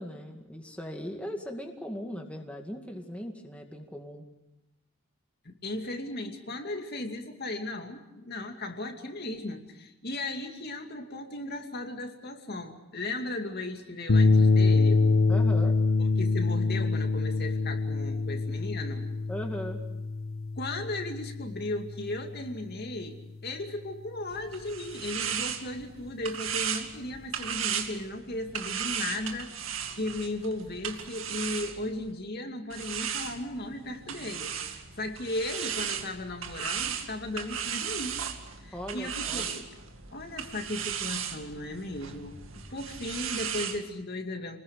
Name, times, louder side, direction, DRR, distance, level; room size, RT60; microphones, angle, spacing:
voice 1, 0.0-4.2 15.3-15.8 19.3-19.8 38.7-39.5, equal, 5° left, 2 dB, 2.2 m, -38 dB
voice 2, 5.4-15.0 16.0-19.1 20.6-29.5 29.9-38.2 38.6-39.7 40.1-44.6, left 2 dB, 45° left, 4 dB, 2.5 m, -36 dB
sound 1, 14.1-22.6, left 3 dB, 70° left, 0.9 m, -25 dB
sound 2, 24.3-32.1 32.7-43.8, right 8 dB, 70° right, 2.3 m, -36 dB
29.0 x 21.0 x 6.5 m, 0.96 s
head